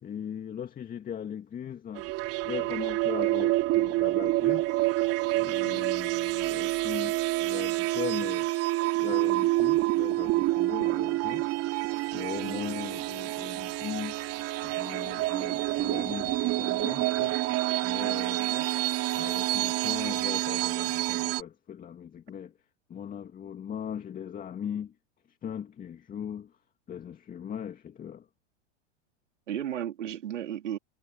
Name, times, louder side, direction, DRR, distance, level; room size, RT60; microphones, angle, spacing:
voice 1, 0.0-2.1 2.4-4.7 5.3-8.5 9.0-11.5 12.1-14.2 14.6-17.4 17.8-18.4 19.1-22.5 22.9-24.9 25.4-26.5 26.9-28.3, left 8 dB, 25° left, 2.1 m, -39 dB
sound 1, 2.0-21.4, right 18 dB, 45° right, 2.8 m, -28 dB
voice 2, 5.6-5.9 12.3-12.6 18.4-18.7 29.5-30.8, right 10 dB, 90° right, 3.6 m, -35 dB
hypercardioid pair, 120°, 35 cm